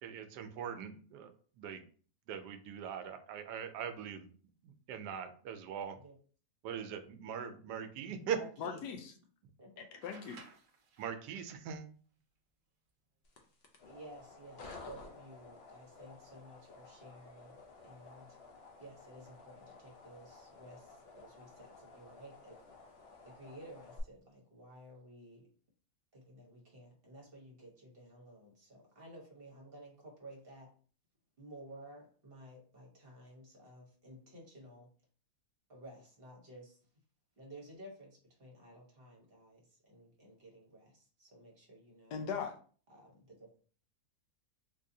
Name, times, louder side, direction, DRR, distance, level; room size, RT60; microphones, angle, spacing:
voice 1, 0.0-1.3 1.6-1.8 2.3-4.3 4.6-6.0 6.6-8.4 11.0-11.9, right 8 dB, 85° right, 8 dB, 1.2 m, -41 dB
voice 2, 8.0-8.8 9.6-10.0 13.8-18.3 18.8-22.6 23.2-25.5 26.1-30.7 31.4-34.9 35.7-36.8 37.4-42.2 42.9-43.7, right 1 dB, 40° right, -1 dB, 1.1 m, -54 dB
voice 3, 8.6-9.1 9.8-10.4 42.1-42.6, left 6 dB, 85° left, 5 dB, 1.2 m, -40 dB
sound 1, 10.0-11.5 13.4-13.5 14.7-15.1, right 4 dB, 60° right, 0.9 m, -57 dB
sound 2, 13.2-24.0, left 3 dB, 55° left, 0.7 m, -54 dB
3.6 x 2.7 x 2.6 m, 0.42 s
omnidirectional pair, 1.7 m